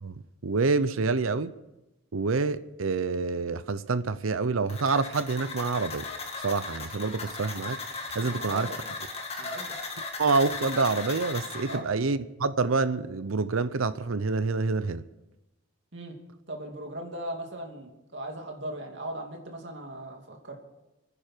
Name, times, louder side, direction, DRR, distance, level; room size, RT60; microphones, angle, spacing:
voice 1, 0.0-1.5 2.1-6.1 6.4-7.8 8.1-8.7 10.2-15.0, right 4 dB, 90° right, 0.7 m, -27 dB
sound 1, 4.7-11.8, left 3 dB, 30° left, 1.8 m, -37 dB
voice 2, 8.2-8.8 9.4-9.7 11.7-11.9 15.9-16.2 16.5-20.6, right 1 dB, 60° right, 2.6 m, -38 dB
29.5 x 10.0 x 4.5 m
head